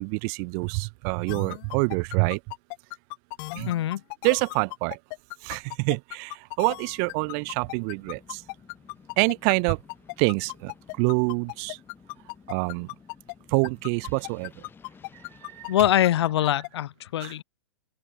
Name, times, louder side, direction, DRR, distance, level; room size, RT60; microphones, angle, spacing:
voice 1, 0.0-2.4 3.5-3.7 4.2-5.0 5.4-8.4 9.2-9.8 10.2-11.8 12.5-12.9 13.5-14.5 15.4-15.7 17.2-17.3, right 40 dB or more, 35° right, 0.7 m, -26 dB
sound 1, 1.3-13.3 13.6-16.7, left 30 dB, 40° left, 1.6 m, -37 dB
voice 2, 3.7-4.0 15.7-17.4, left 12 dB, 55° left, 0.4 m, -23 dB
sound 2, 6.6-16.4, left 6 dB, 15° left, 7.2 m, -55 dB
open air
hypercardioid pair, 120°, 16 cm